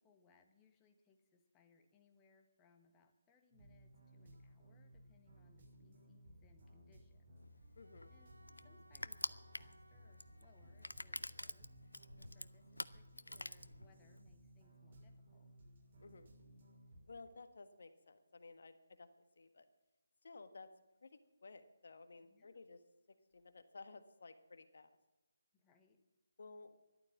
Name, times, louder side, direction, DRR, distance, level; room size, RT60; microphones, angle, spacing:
voice 1, 0.0-7.4 7.7-7.8 8.1-8.3 8.6-15.5 22.2-22.6 25.5-26.0, left 4 dB, 15° left, 5 dB, 1.4 m, -72 dB
sound 1, 3.5-17.0, equal, 45° right, 6.4 m, -61 dB
Crushing, 7.4-14.2, left 1 dB, 85° left, 0.6 m, -47 dB
voice 2, 7.8-8.1 16.0-16.3 17.1-19.1 19.4-19.6 20.2-20.7 21.0-21.1 21.4-22.8 23.3-25.0 26.4-26.8, left 3 dB, 55° left, 9 dB, 1.5 m, -55 dB
Bowed string instrument, 7.8-12.7, right 1 dB, 90° right, 3.1 m, -69 dB
13.5 x 12.0 x 7.3 m, 1.1 s
figure-of-eight pair, 150°, 0 cm